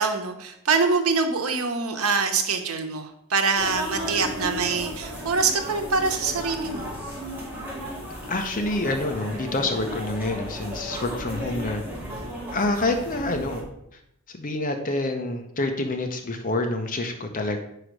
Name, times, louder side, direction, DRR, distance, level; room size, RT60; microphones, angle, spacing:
voice 1, 0.0-7.1, right 4 dB, 85° right, 5 dB, 1.0 m, -24 dB
sound 1, 3.5-13.6, equal, 10° right, 2.0 m, -35 dB
voice 2, 8.3-11.8 12.5-13.6 14.3-17.6, left 2 dB, 40° left, 6 dB, 0.7 m, -27 dB
5.1 x 4.9 x 6.0 m, 0.77 s
head